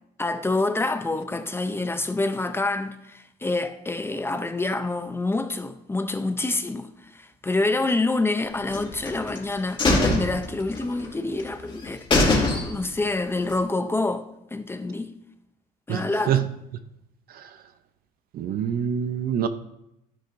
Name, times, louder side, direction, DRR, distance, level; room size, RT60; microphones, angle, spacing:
voice 1, 0.2-14.3 14.5-15.1 15.9-16.5, left 2 dB, 15° left, 0.6 m, -27 dB
sound 1, 8.7-9.4 9.8-11.1 11.4-11.5 11.8-11.9 12.1-13.0 13.4-13.5, left 2 dB, 30° left, 2.5 m, -22 dB
voice 2, 15.9-16.4 17.3-17.5 18.3-19.5, right 9 dB, 60° right, 0.7 m, -25 dB
11.5 x 10.0 x 2.6 m
cardioid pair, 110°, 17 cm